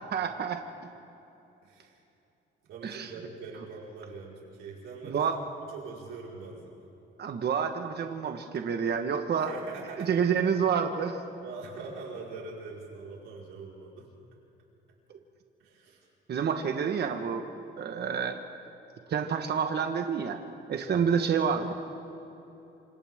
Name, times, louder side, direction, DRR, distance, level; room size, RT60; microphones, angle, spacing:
voice 1, 0.1-0.6 2.8-3.1 5.0-5.3 7.2-9.5 10.0-11.2 16.3-17.5 17.8-18.4 19.1-20.4 20.7-21.7, right 7 dB, 55° right, 5 dB, 1.5 m, -28 dB
voice 2, 1.6-2.0 2.7-5.2 5.7-6.7 9.3-10.2 11.4-14.1 15.6-16.1 20.9-21.1, right 4 dB, 90° right, -4 dB, 4.9 m, -43 dB
28.5 x 26.0 x 3.7 m, 2.9 s
cardioid pair, 90°, 20 cm